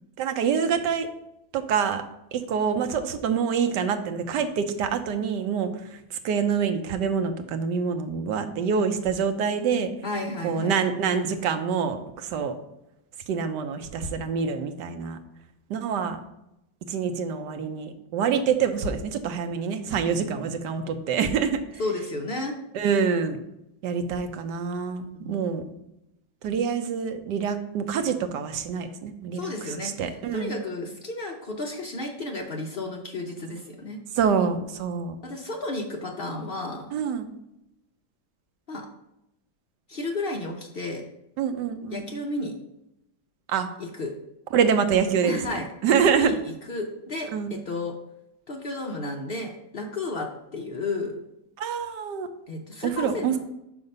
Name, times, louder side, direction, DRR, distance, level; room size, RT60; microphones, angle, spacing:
voice 1, 0.2-1.1 1.5-2.0 2.3-9.9 10.4-12.5 13.3-15.2 15.7-16.2 16.9-21.8 22.7-23.4 23.8-25.7 26.4-30.5 34.2-35.1 36.9-37.3 41.4-42.0 43.5-43.7 44.5-45.3 45.8-46.3 47.3-47.6 51.6-52.3 52.8-53.4, right 6 dB, 70° right, 8 dB, 1.2 m, -26 dB
voice 2, 10.0-10.7 21.8-22.5 25.1-25.8 29.3-34.0 35.2-36.9 38.7-38.9 39.9-41.0 41.9-42.5 43.8-44.1 45.2-46.4 46.7-48.0 48.5-51.2 52.5-53.4, left 2 dB, 70° left, 1 dB, 0.5 m, -33 dB
5.8 x 5.5 x 5.3 m, 0.85 s
omnidirectional pair, 2.1 m